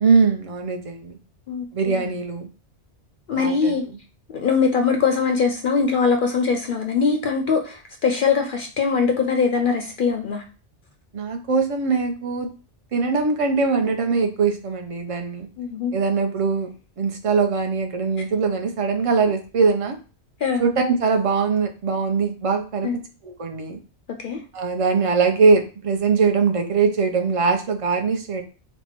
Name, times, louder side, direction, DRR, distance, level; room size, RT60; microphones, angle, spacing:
voice 1, 0.0-1.2 1.7-2.5 3.4-3.7 11.1-12.5 12.9-15.5 15.9-16.7 17.0-19.9 20.6-22.9 23.2-23.8 24.5-28.4, right 4 dB, 40° right, 5 dB, 0.5 m, -21 dB
voice 2, 1.5-2.1 3.3-3.8 4.3-10.4 15.6-15.9 20.4-20.6 22.8-23.0 24.2-24.4, left 5 dB, 60° left, 4 dB, 0.6 m, -22 dB
4.4 x 2.2 x 4.3 m, 0.35 s
omnidirectional pair, 1.2 m